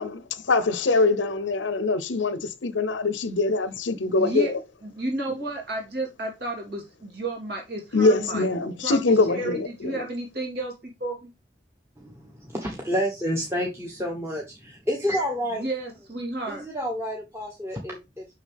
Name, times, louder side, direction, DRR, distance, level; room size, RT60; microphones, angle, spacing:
voice 1, 0.0-4.6 7.9-10.0, left 3 dB, 85° left, 0.7 m, -23 dB
voice 2, 4.2-4.5 4.9-8.5 8.8-11.3 15.5-16.7, right 2 dB, 60° right, 3.2 m, -32 dB
voice 3, 12.0-15.7 16.5-18.3, equal, 15° right, 1.3 m, -29 dB
6.4 x 5.9 x 3.5 m
head